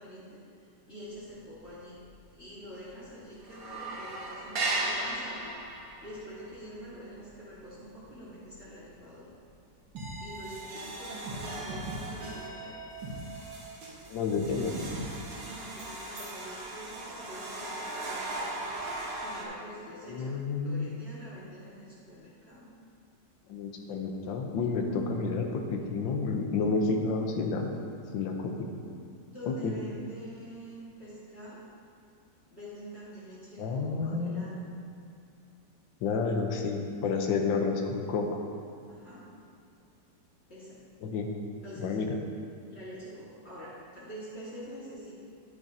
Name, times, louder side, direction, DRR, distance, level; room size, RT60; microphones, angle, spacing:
voice 1, 0.0-2.0 2.4-9.3 10.2-12.7 15.3-18.6 19.1-20.4 20.6-22.7 29.3-31.6 32.5-34.6 38.9-39.3 40.5-40.8 41.6-42.0 42.7-45.1, equal, 35° left, -10 dB, 2.1 m, -46 dB
sound 1, 1.3-1.8 2.0-2.1 2.5-3.1 3.3-8.6 9.0-9.3 9.8-9.9 10.3-19.5, right 2 dB, 55° right, 1.5 m, -38 dB
sound 2, 9.9-14.0 14.3-15.4, right 1 dB, 80° right, 2.2 m, -40 dB
voice 2, 14.1-14.8 20.0-20.9 23.5-27.7 28.1-28.7 29.5-29.7 33.6-34.6 36.0-38.3 41.0-41.3 41.8-42.2, left 4 dB, 90° left, 3 dB, 1.5 m, -30 dB
10.5 x 8.3 x 2.8 m, 2.5 s
omnidirectional pair, 2.0 m